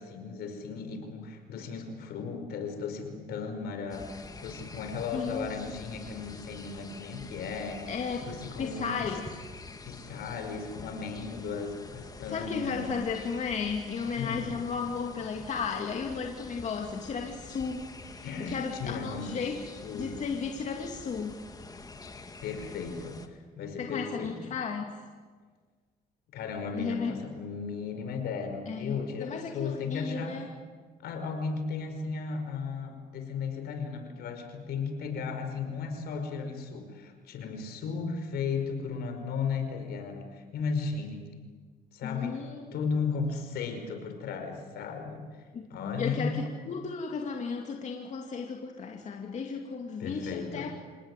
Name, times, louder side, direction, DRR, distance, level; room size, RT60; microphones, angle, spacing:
voice 1, 0.0-7.9 8.2-9.1 9.9-12.9 14.2-14.5 18.2-19.5 19.8-20.2 22.4-24.5 26.3-30.4 31.0-41.3 41.9-42.4 42.7-46.3 50.0-50.7, left 5 dB, 70° left, 6 dB, 5.2 m, -35 dB
sound 1, 3.9-23.3, left 3 dB, 20° left, 1.9 m, -47 dB
voice 2, 5.1-5.6 7.9-8.2 8.6-9.2 12.3-19.6 19.9-21.4 23.8-24.8 26.7-27.1 28.7-30.5 42.0-42.7 45.5-50.7, left 5 dB, 45° left, 2 dB, 2.4 m, -34 dB
27.5 x 18.5 x 9.7 m, 1.5 s
cardioid pair, 110°, 17 cm